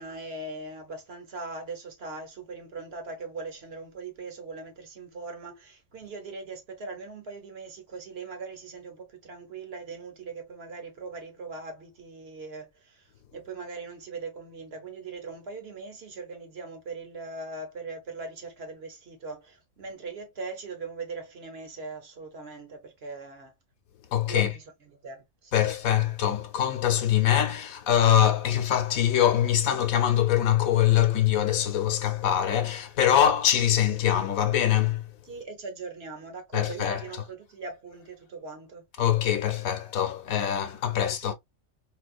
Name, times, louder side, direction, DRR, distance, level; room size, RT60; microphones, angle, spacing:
voice 1, 0.0-23.5 24.3-25.6 35.2-38.9 40.9-41.3, right 3 dB, 55° right, 1.1 m, -40 dB
voice 2, 24.1-24.5 25.5-35.1 36.5-37.0 39.0-41.3, left 10 dB, 90° left, 1.2 m, -23 dB
4.0 x 2.4 x 2.4 m
omnidirectional pair, 1.4 m